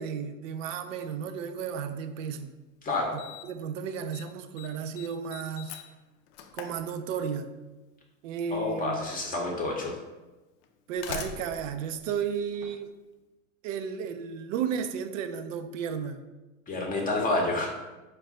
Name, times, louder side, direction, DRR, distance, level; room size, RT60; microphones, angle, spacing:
voice 1, 0.0-2.5 3.1-5.7 6.5-7.5 8.2-9.0 10.9-12.9 13.6-16.2, right 7 dB, 70° right, 9 dB, 0.5 m, -33 dB
Slam, 2.4-2.5 3.2-3.6 3.9-4.3 4.6-7.5 8.6-8.7 9.6-9.7 10.6-13.0, left 6 dB, 50° left, 0.5 m, -42 dB
voice 2, 2.8-3.2 8.5-9.9 16.7-17.7, left 2 dB, 20° left, -1 dB, 0.7 m, -29 dB
4.1 x 2.2 x 3.6 m, 1.1 s
hypercardioid pair, 110°, 41 cm